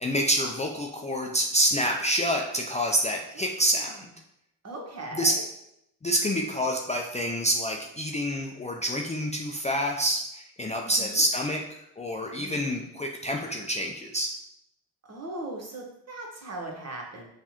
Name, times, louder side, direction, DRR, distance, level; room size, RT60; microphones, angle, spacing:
voice 1, 0.0-3.9 5.1-5.3 6.0-11.6 12.0-14.3, equal, 15° left, 0 dB, 0.5 m, -27 dB
voice 2, 4.6-5.4 10.9-11.2 12.3-12.8 15.0-17.3, right 2 dB, 35° right, 0 dB, 1.2 m, -39 dB
5.3 x 2.4 x 2.9 m, 0.80 s
hypercardioid pair, 45°, 43 cm